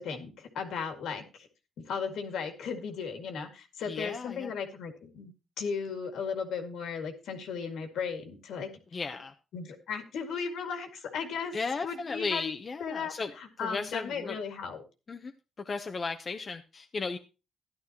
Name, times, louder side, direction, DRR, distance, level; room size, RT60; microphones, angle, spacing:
voice 1, 0.0-1.5 1.8-5.3 5.6-8.7 9.5-11.5 11.8-12.5 12.8-14.8, left 6 dB, 75° left, 5 dB, 2.1 m, -36 dB
voice 2, 3.9-4.5 8.9-9.3 11.5-13.3 13.6-14.4 15.1-15.3 15.6-17.2, left 4 dB, 35° left, 5 dB, 0.8 m, -35 dB
13.5 x 11.0 x 2.9 m, 0.31 s
cardioid pair, 90°, 0 cm